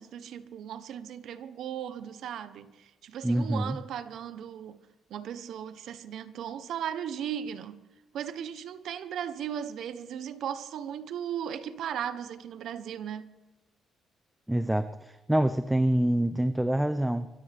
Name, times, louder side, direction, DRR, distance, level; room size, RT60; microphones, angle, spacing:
voice 1, 0.0-4.8 5.1-7.8 8.1-13.3, right 9 dB, 75° right, 1.1 m, -37 dB
voice 2, 3.2-3.8 14.5-17.3, right 1 dB, 5° right, 0.7 m, -26 dB
24.5 x 14.0 x 3.6 m
cardioid pair, 90°, 0 cm